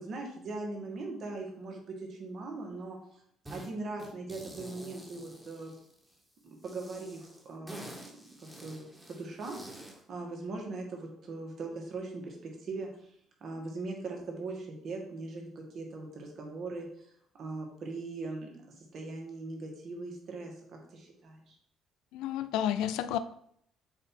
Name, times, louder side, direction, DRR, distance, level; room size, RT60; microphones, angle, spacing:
voice 1, 0.0-3.2 3.5-5.7 6.4-7.9 8.4-8.9 9.2-12.9 13.4-17.1 17.4-21.6, right 3 dB, 55° right, 1 dB, 1.7 m, -40 dB
sound 1, 3.5-3.7 4.0-6.1 6.6-10.0, right 1 dB, 10° right, 1.7 m, -48 dB
voice 2, 22.1-23.2, left 10 dB, 90° left, 12 dB, 0.4 m, -31 dB
7.7 x 2.9 x 4.5 m, 0.69 s
cardioid pair, 90°, 0 cm